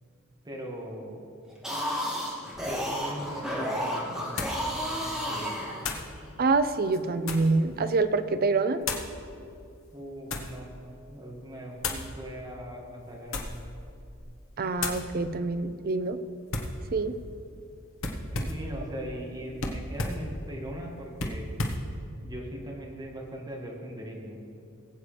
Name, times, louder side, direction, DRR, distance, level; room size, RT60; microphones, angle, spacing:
voice 1, 0.4-1.2 2.6-5.7 9.9-10.7 11.1-13.6 18.3-21.5 22.2-24.4, equal, 20° right, -2 dB, 1.8 m, -40 dB
sound 1, 1.5-6.2, equal, 5° right, 2.3 m, -32 dB
sound 2, 3.2-3.3 4.4-4.7 5.8-6.1 6.8-7.6 8.8-9.1 9.9-10.6 11.8-12.1 13.2-13.7 14.1-14.4 14.8-15.1 16.5-16.8 18.0-18.7 19.6-20.3 21.2-21.9, left 3 dB, 70° left, 1.2 m, -33 dB
voice 2, 6.4-8.8 14.6-16.2 16.9-17.1, right 3 dB, 45° right, 11 dB, 0.5 m, -26 dB
20.0 x 8.3 x 3.4 m, 2.4 s
head